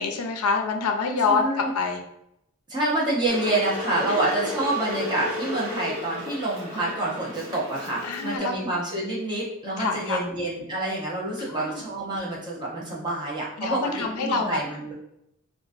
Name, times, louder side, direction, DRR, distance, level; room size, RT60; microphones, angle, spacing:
voice 1, 0.0-2.0 4.0-4.5 8.0-8.5 9.8-10.2 11.4-11.8 13.6-14.6, left 4 dB, 85° left, 4 dB, 0.5 m, -26 dB
voice 2, 1.3-1.7 2.7-14.9, right 2 dB, 20° right, -5 dB, 0.8 m, -28 dB
Water / Boiling, 3.3-8.4, left 2 dB, 90° right, 0.9 m, -33 dB
3.8 x 2.4 x 2.5 m, 0.81 s
head